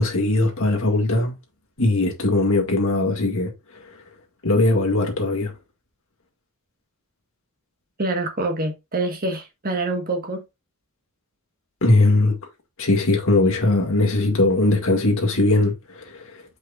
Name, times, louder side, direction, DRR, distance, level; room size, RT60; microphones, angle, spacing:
voice 1, 0.0-1.3 1.8-3.5 4.4-5.5 11.8-12.4 12.8-16.3, left 2 dB, 65° left, 2.0 m, -20 dB
voice 2, 8.0-10.4, right 2 dB, 40° right, 1.4 m, -26 dB
7.9 x 5.3 x 2.4 m
head